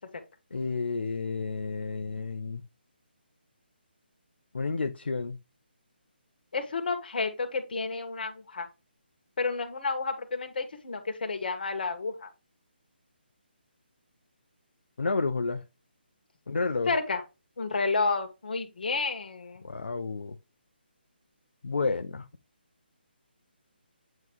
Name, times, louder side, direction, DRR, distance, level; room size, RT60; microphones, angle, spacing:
voice 1, 0.5-2.6 4.5-5.4 15.0-15.6 16.5-16.9 19.6-20.4 21.6-22.3, left 4 dB, 80° left, 0.7 m, -30 dB
voice 2, 6.5-8.7 9.4-12.3 16.9-17.2 17.6-19.6, left 4 dB, 60° left, 1.9 m, -30 dB
9.1 x 3.2 x 3.6 m
hypercardioid pair, 160°, 6 cm